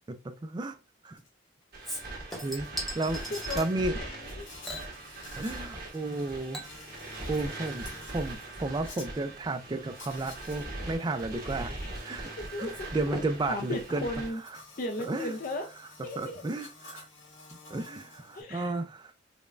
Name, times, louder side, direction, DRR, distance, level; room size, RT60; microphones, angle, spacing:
voice 1, 0.1-0.8 1.0-1.2 2.4-3.2 3.6-4.0 5.4-6.6 7.3-12.3 12.6-14.1 15.1-15.3 16.2-17.1 17.7-19.1, right 2 dB, 20° right, 0.3 m, -33 dB
Insect, 1.2-1.3 1.6-9.1 9.9-10.7 11.0-18.4, left 3 dB, 75° left, 1.1 m, -51 dB
sound 1, 1.7-14.3, right 2 dB, 50° right, 1.6 m, -41 dB
Chink clink / Liquid, 1.8-3.7 4.6-5.8 6.1-15.1 15.4-15.5, equal, ahead, 0.9 m, -44 dB
voice 2, 3.3-4.5 7.5-7.6 12.5-12.9 13.5-14.4 14.8-15.7 16.0-16.4 18.3-18.7, left 2 dB, 45° left, 0.4 m, -36 dB
5.1 x 2.2 x 2.4 m
head